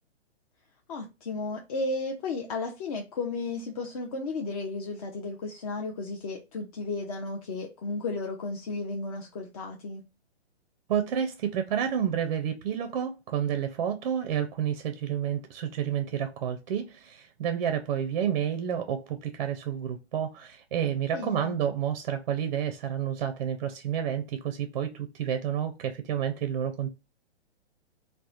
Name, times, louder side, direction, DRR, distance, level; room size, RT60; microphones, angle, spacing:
voice 1, 0.9-10.0 21.1-21.5, left 3 dB, 35° left, 0.4 m, -34 dB
voice 2, 10.9-26.9, right 9 dB, 40° right, 0.4 m, -30 dB
2.8 x 2.1 x 2.3 m
hypercardioid pair, 145°, 33 cm